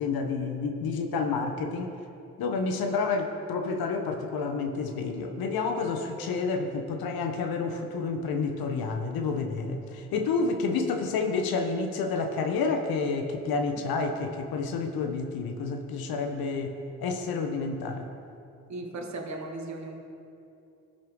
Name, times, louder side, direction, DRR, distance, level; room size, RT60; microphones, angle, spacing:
voice 1, 0.0-1.9 2.4-18.1, left 4 dB, 65° left, 5 dB, 1.0 m, -29 dB
voice 2, 18.7-20.0, right 2 dB, 45° right, 2 dB, 1.9 m, -36 dB
18.5 x 6.3 x 3.8 m, 2.7 s
hypercardioid pair, 45°, 38 cm